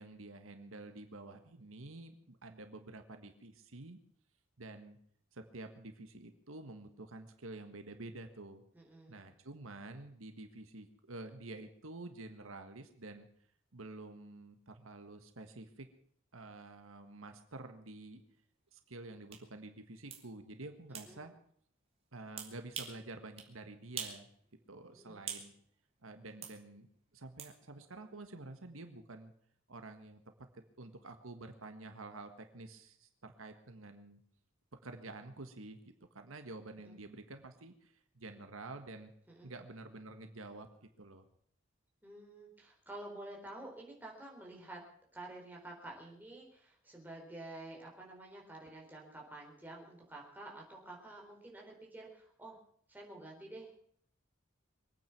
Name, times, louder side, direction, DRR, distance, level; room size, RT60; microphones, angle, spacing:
voice 1, 0.0-4.0 4.6-5.0 5.3-8.6 9.1-13.3 13.7-15.9 16.3-18.2 18.7-21.3 22.1-24.3 24.7-25.5 26.0-26.9 27.1-29.3 29.7-30.2 30.5-34.2 34.8-39.1 39.4-40.7 41.0-41.3, right 2 dB, 85° right, 7 dB, 1.6 m, -49 dB
voice 2, 8.7-9.2 21.0-21.2 25.0-25.2 36.8-36.9 39.3-39.5 42.0-44.8 45.1-52.6 52.9-53.7, right 2 dB, 10° right, -1 dB, 4.2 m, -50 dB
sound 1, 19.3-19.4 20.1-20.2 20.9-21.1 22.4-23.0 23.4-23.5 24.0-24.2 24.6-25.5 26.4-26.6 27.4-27.5, right 6 dB, 30° right, 2.5 m, -43 dB
24.0 x 9.2 x 6.0 m, 0.64 s
head